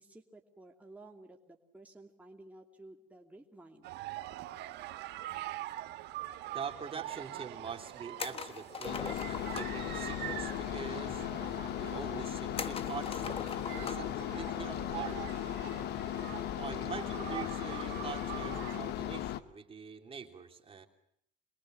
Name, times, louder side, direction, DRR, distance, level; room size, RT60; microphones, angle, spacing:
voice 1, 0.0-3.9, right 2 dB, 10° right, 1 dB, 2.7 m, -54 dB
sound 1, 3.8-18.8, right 15 dB, 80° right, 1.6 m, -44 dB
voice 2, 6.5-11.3 11.8-13.3 13.6-15.2 16.5-20.9, right 6 dB, 35° right, 4 dB, 3.0 m, -44 dB
sound 2, 8.2-9.8 12.6-14.2 14.5-14.6 16.2-16.5, left 5 dB, 35° left, 1.4 m, -41 dB
sound 3, 8.8-19.4, left 12 dB, 75° left, 1.1 m, -37 dB
27.0 x 21.5 x 7.7 m, 0.72 s
cardioid pair, 110°, 17 cm